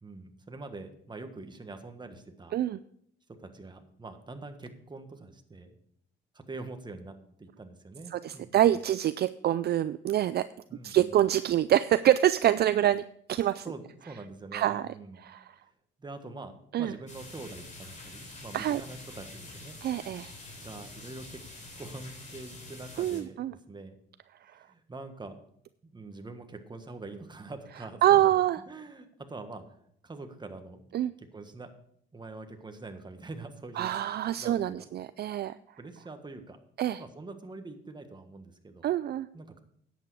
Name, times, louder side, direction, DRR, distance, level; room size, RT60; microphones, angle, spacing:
voice 1, 0.0-2.5 3.4-5.8 6.3-8.7 10.7-11.2 13.6-15.3 16.0-16.5 16.8-19.8 20.6-21.4 21.8-24.0 24.6-25.4 25.8-28.3 28.7-29.8 30.0-30.8 31.2-31.7 32.1-33.9 34.4-34.8 35.8-36.6 36.9-38.8 39.3-39.6, right 3 dB, 20° right, 7 dB, 1.5 m, -44 dB
voice 2, 8.1-10.5 10.8-13.0 13.3-13.7 14.5-14.9 15.2-15.5 16.7-16.9 18.5-18.8 19.8-20.3 23.0-23.5 28.0-28.6 30.9-31.1 33.8-35.5 36.8-37.0 38.8-39.3, right 12 dB, 55° right, 14 dB, 0.4 m, -25 dB
sound 1, 17.1-23.2, left 2 dB, 40° left, 3.7 m, -46 dB
10.5 x 8.4 x 4.8 m, 0.67 s
cardioid pair, 90°, 20 cm